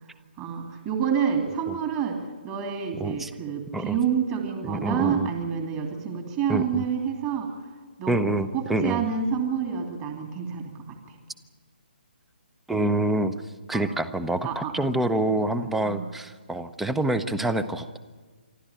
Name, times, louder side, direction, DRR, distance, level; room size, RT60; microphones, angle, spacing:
voice 1, 0.4-7.5 8.0-11.0 13.7-13.9 14.4-14.7 15.8-16.1, right 7 dB, 25° right, 3 dB, 2.5 m, -28 dB
voice 2, 3.0-3.3 3.7-4.0 4.7-5.3 6.5-6.8 8.1-9.0 12.7-13.3 13.7-18.0, right 1 dB, 5° right, 13 dB, 0.6 m, -26 dB
26.5 x 12.5 x 9.0 m, 1.4 s
figure-of-eight pair, 140°, 6 cm